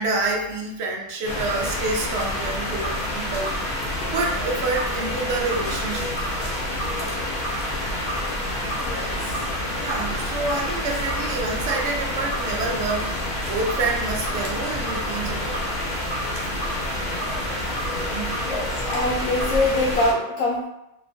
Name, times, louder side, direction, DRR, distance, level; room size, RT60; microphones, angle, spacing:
voice 1, 0.0-3.6 4.1-6.1 9.7-15.6 17.6-18.4, right 3 dB, 75° right, -1 dB, 0.6 m, -28 dB
sound 1, 1.2-20.1, left 1 dB, 55° left, 0.6 m, -28 dB
voice 2, 18.4-20.7, left 2 dB, 75° left, -3 dB, 1.0 m, -24 dB
2.8 x 2.2 x 2.6 m, 0.87 s
omnidirectional pair, 1.7 m